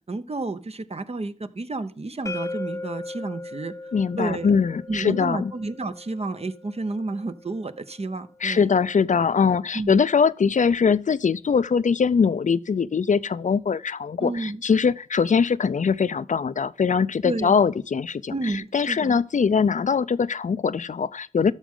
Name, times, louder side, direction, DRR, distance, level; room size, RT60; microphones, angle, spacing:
voice 1, 0.1-3.7 4.2-4.5 4.9-8.7 9.7-10.0 14.2-14.6 17.2-17.5 18.3-19.2, right 2 dB, 55° right, 0.8 m, -31 dB
sound 1, 2.3-8.1, left 3 dB, 25° left, 0.5 m, -38 dB
voice 2, 3.9-5.5 8.4-21.5, left 6 dB, 75° left, 0.4 m, -22 dB
13.0 x 6.2 x 3.7 m
wide cardioid pair, 45°, 13 cm